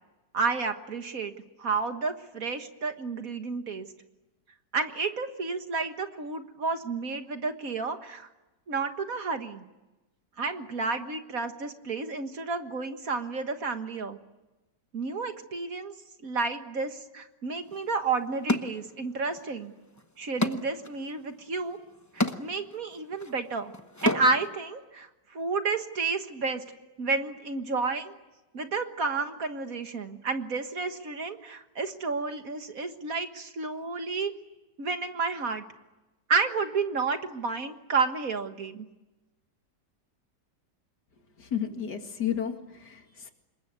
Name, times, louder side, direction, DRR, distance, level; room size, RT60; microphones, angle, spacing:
voice 1, 0.3-1.3 1.6-3.9 4.7-8.3 8.7-9.6 10.4-14.2 14.9-15.9 16.2-19.7 20.2-21.8 22.1-23.7 24.0-26.6 27.0-28.1 28.5-34.3 34.8-35.6 36.3-38.9, right 4 dB, 55° right, 7 dB, 1.9 m, -31 dB
sound 1, 17.7-17.8 18.5-19.4 19.7-24.5, left 1 dB, 15° left, 0.7 m, -32 dB
voice 2, 41.4-43.3, left 9 dB, 70° left, 5 dB, 2.7 m, -32 dB
27.0 x 22.5 x 9.6 m, 1.1 s
omnidirectional pair, 1.9 m